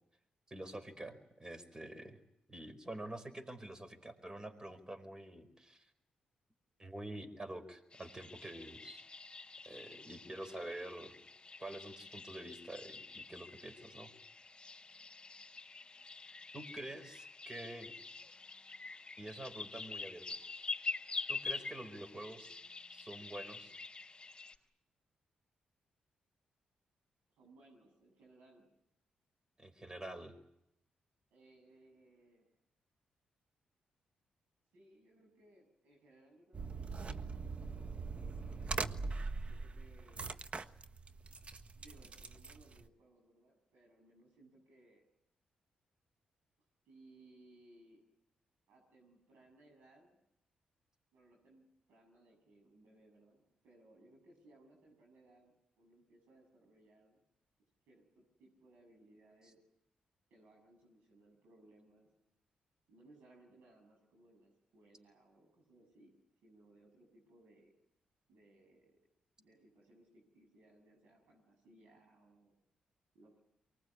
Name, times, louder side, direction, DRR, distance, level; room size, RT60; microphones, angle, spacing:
voice 1, 0.5-2.2 2.5-5.9 6.8-9.0 9.6-11.1 11.6-14.1 16.5-17.9 19.2-20.2 21.3-22.6 22.9-23.7 29.6-30.4, right 1 dB, 25° right, 10 dB, 4.9 m, -47 dB
sound 1, 7.9-24.5, left 4 dB, 35° left, 4.4 m, -46 dB
voice 2, 27.4-28.7 31.3-32.5 34.7-37.0 37.7-39.1 39.4-40.4 41.8-45.0 46.9-48.0 48.7-50.2 51.1-57.2 57.9-59.6 60.3-62.1 62.9-66.1 66.4-67.7 68.3-69.0 69.4-72.5 73.1-73.4, right 2 dB, 80° right, 0 dB, 7.3 m, -64 dB
sound 2, 36.5-42.9, right 4 dB, 45° right, 1.3 m, -42 dB
24.0 x 20.0 x 9.8 m, 0.79 s
supercardioid pair, 55°, 3 cm